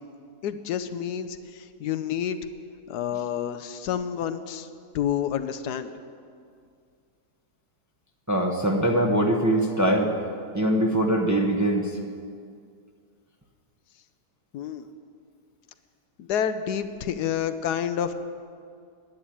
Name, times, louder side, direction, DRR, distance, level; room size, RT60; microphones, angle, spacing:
voice 1, 0.4-2.4 2.9-4.7 4.9-5.9 14.5-14.9 16.2-18.1, left 9 dB, 90° left, 9 dB, 1.3 m, -29 dB
voice 2, 8.3-10.1 10.5-12.0, right 1 dB, 15° right, 1 dB, 0.7 m, -22 dB
10.5 x 9.9 x 8.6 m, 2.2 s
omnidirectional pair, 1.7 m